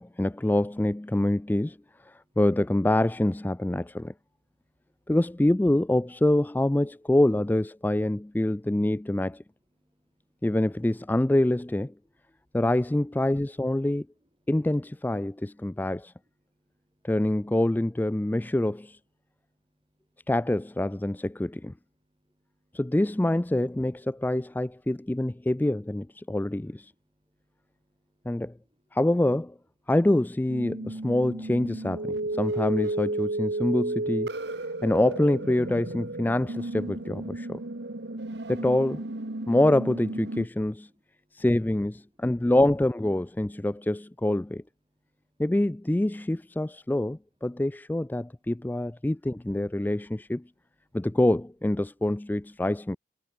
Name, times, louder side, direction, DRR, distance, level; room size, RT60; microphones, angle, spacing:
voice 1, 0.0-1.8 2.0-4.1 5.1-9.4 10.4-11.9 12.5-14.1 14.5-16.1 17.0-19.0 20.3-21.7 22.7-26.9 28.3-28.5 28.9-29.5 29.9-34.3 34.8-37.6 38.5-39.0 39.5-40.9 41.3-44.6 45.4-50.4 50.9-53.0, left 1 dB, 10° left, 0.3 m, -25 dB
voice 2, 9.8-10.4 15.7-15.8 16.5-17.1 22.2-22.8 27.3-28.5 40.9-41.5, equal, 25° right, 5.0 m, -74 dB
sound 1, 30.5-40.5, right 2 dB, 60° right, 1.5 m, -33 dB
head